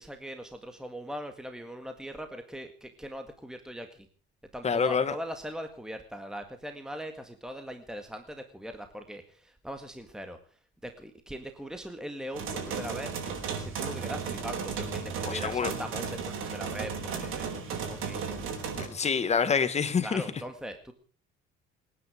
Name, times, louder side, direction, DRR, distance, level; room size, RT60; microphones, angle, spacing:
voice 1, 0.0-4.1 4.5-13.1 13.6-17.6 17.9-18.3 20.0-20.9, equal, 5° right, 1.8 m, -40 dB
voice 2, 4.6-5.1 15.2-15.7 18.8-20.2, left 6 dB, 30° left, 1.9 m, -27 dB
sound 1, 12.3-18.9, right 6 dB, 70° right, 6.4 m, -34 dB
28.0 x 9.9 x 5.1 m
cardioid pair, 110°, 21 cm